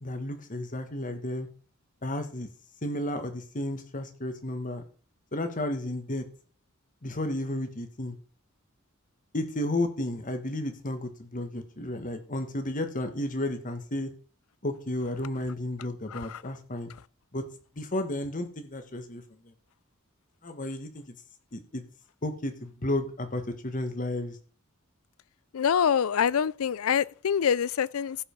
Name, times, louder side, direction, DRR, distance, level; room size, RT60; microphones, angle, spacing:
voice 1, 0.0-1.5 2.0-2.5 2.8-4.8 5.3-6.3 7.0-8.2 9.3-14.1 14.6-16.9 17.3-17.5 17.7-19.2 20.4-21.0 21.5-21.8 22.2-24.4, left 1 dB, 40° left, 1.5 m, -32 dB
voice 2, 16.1-16.4 25.5-28.2, left 7 dB, 85° left, 0.4 m, -25 dB
15.0 x 5.3 x 5.2 m
head